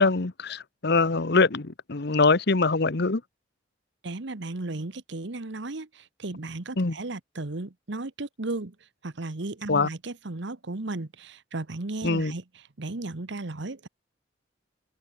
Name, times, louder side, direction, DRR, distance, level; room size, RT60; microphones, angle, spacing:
voice 1, 0.0-3.2 6.8-6.9 9.7-9.9 12.0-12.3, left 3 dB, 60° left, 1.0 m, -23 dB
voice 2, 4.0-8.7 9.0-13.9, right 2 dB, 65° right, 1.2 m, -35 dB
head